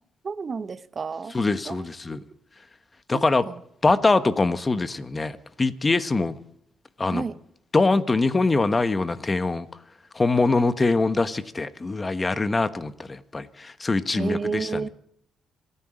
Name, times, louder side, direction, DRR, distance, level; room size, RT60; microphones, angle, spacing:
voice 1, 0.2-1.4 1.7-2.2 3.1-3.5 7.1-7.4 14.1-14.9, right 5 dB, 40° right, 1.0 m, -31 dB
voice 2, 1.3-2.2 3.1-3.4 3.8-6.4 7.0-7.2 7.7-9.7 10.1-14.8, left 3 dB, 25° left, 1.2 m, -23 dB
28.0 x 10.0 x 5.1 m
cardioid pair, 90°, 0 cm